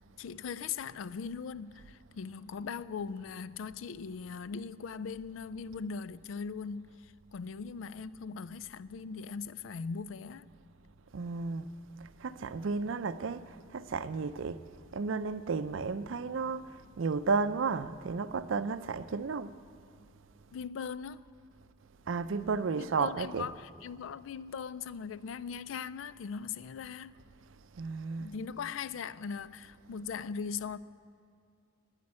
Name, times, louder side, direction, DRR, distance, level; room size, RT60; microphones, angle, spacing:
voice 1, 0.2-10.5 20.5-21.3 22.8-27.1 28.2-30.8, left 6 dB, 90° left, 0.4 m, -40 dB
voice 2, 11.1-11.7 12.0-14.6 14.9-19.6 22.1-23.5 27.7-28.3, right 4 dB, 80° right, 0.5 m, -33 dB
9.7 x 9.6 x 9.7 m
head